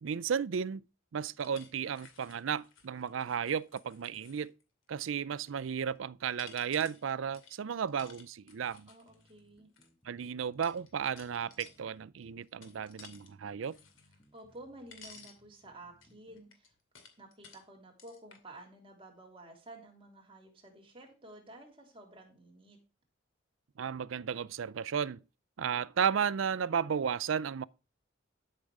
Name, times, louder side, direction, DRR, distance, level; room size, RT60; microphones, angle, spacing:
voice 1, 0.0-0.8 1.1-4.5 4.9-8.9 10.1-13.8 23.8-25.2 25.6-27.6, right 7 dB, 80° right, 0.4 m, -34 dB
sound 1, 1.4-4.6 5.2-5.9 6.3-9.9 10.6-11.8 12.2-13.3 13.6-14.7 14.9-15.4 16.0-17.6 18.0-18.4, left 5 dB, 85° left, 2.4 m, -56 dB
voice 2, 8.9-9.7 14.3-16.7 17.2-22.8, right 1 dB, 30° right, 3.3 m, -52 dB
sound 2, 9.1-16.5, equal, 25° left, 2.0 m, -67 dB
12.0 x 6.6 x 4.8 m
head